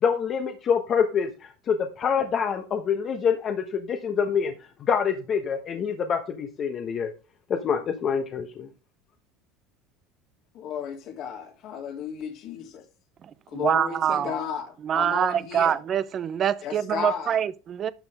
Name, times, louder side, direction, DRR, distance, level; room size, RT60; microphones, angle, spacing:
voice 1, 0.0-7.1 7.5-8.7, left 7 dB, 40° left, 1.2 m, -26 dB
voice 2, 10.5-12.8 13.5-15.8 16.6-17.4, left 8 dB, 60° left, 2.9 m, -33 dB
voice 3, 13.5-14.3 14.8-17.9, right 9 dB, 40° right, 0.7 m, -25 dB
12.0 x 6.1 x 3.5 m
supercardioid pair, 105°, 0 cm